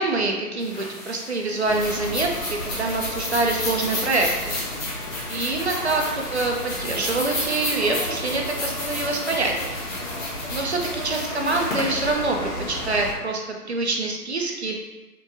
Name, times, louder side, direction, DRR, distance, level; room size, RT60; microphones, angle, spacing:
voice 1, 0.0-4.5 5.3-9.8 10.5-14.7, right 3 dB, 50° right, 1 dB, 0.4 m, -25 dB
sound 1, 0.6-13.0, left 2 dB, 55° left, 1.3 m, -33 dB
sound 2, 1.6-13.1, left 1 dB, 80° left, 1.5 m, -33 dB
3.3 x 3.0 x 2.8 m, 1.1 s
hypercardioid pair, 165°, 46 cm